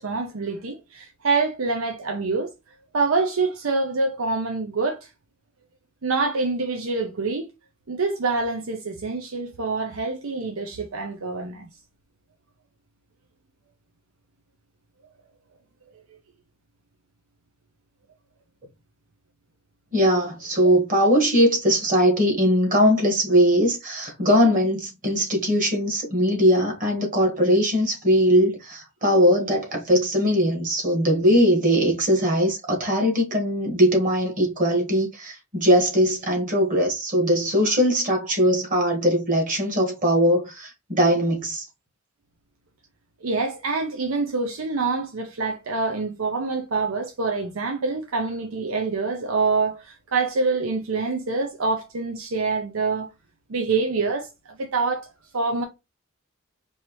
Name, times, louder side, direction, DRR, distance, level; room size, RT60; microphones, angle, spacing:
voice 1, 0.0-2.5 2.9-5.1 6.0-7.5 7.9-11.7 20.6-20.7 43.2-53.1 53.5-55.6, right 3 dB, 90° right, 0.7 m, -26 dB
voice 2, 19.9-41.6, equal, 40° right, 1.6 m, -20 dB
4.6 x 2.8 x 3.1 m
head